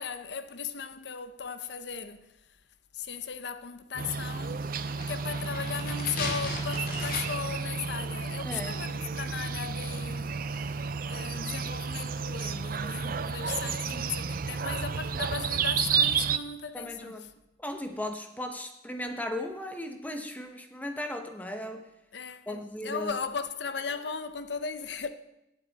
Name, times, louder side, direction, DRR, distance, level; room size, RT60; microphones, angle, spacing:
voice 1, 0.0-2.3 2.9-10.7 11.1-17.3 22.1-25.1, left 6 dB, 70° left, 0.8 m, -37 dB
sound 1, 4.0-16.4, right 6 dB, 50° right, 0.5 m, -32 dB
sound 2, 4.7-7.6 7.8-7.9, left 2 dB, 50° left, 2.3 m, -37 dB
voice 2, 8.4-8.8 12.8-13.0 16.7-17.3 17.6-21.9 22.5-23.2, left 1 dB, 10° left, 0.9 m, -37 dB
17.0 x 8.4 x 4.1 m
head